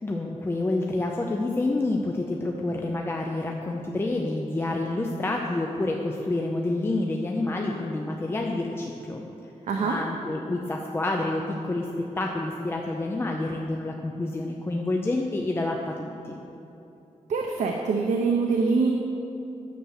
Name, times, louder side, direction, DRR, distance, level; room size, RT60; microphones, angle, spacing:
voice 1, 0.0-9.2 9.8-11.9 12.2-16.4, left 2 dB, 20° left, 0 dB, 0.6 m, -28 dB
voice 2, 9.7-10.0 17.3-18.9, right 4 dB, 70° right, 2 dB, 0.8 m, -24 dB
9.6 x 7.5 x 6.5 m, 2.9 s
wide cardioid pair, 165°, 13 cm